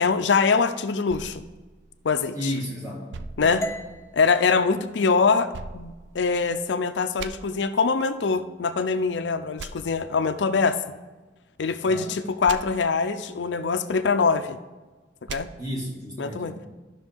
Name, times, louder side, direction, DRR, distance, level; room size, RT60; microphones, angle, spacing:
voice 1, 0.0-1.4 2.0-2.5 3.4-3.6 4.1-10.8 11.6-14.6 15.3-15.5 16.2-16.5, left 5 dB, 80° left, 10 dB, 0.5 m, -23 dB
sound 1, 1.1-2.5 3.1-4.3 5.5-6.7 7.2-7.3 9.6-9.7 12.5-12.6 15.3-15.4, right 4 dB, 90° right, 0.4 m, -40 dB
voice 2, 2.3-3.1 3.4-3.7 11.8-12.1 15.6-16.7, equal, 20° right, -3 dB, 2.1 m, -33 dB
sound 2, 3.6-7.7, equal, 15° left, 0.5 m, -40 dB
13.0 x 5.8 x 3.5 m, 1.2 s
head